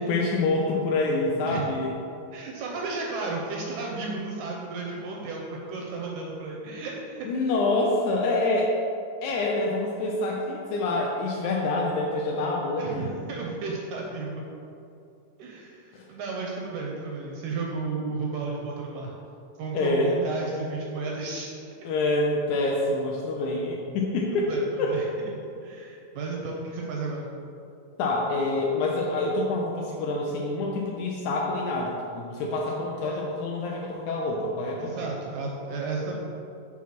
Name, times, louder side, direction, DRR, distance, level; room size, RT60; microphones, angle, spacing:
voice 1, 0.0-1.9 7.2-8.8 9.2-13.1 15.9-16.0 19.7-20.2 21.8-24.5 24.8-25.0 28.0-34.9, left 2 dB, 80° left, -2 dB, 1.8 m, -26 dB
voice 2, 2.3-7.3 9.3-9.5 12.8-14.4 15.4-19.2 19.6-21.5 24.5-25.1 25.6-27.3 33.0-33.2 34.8-36.2, right 3 dB, 80° right, -1 dB, 1.7 m, -33 dB
6.2 x 3.8 x 5.8 m, 2.7 s
omnidirectional pair, 4.0 m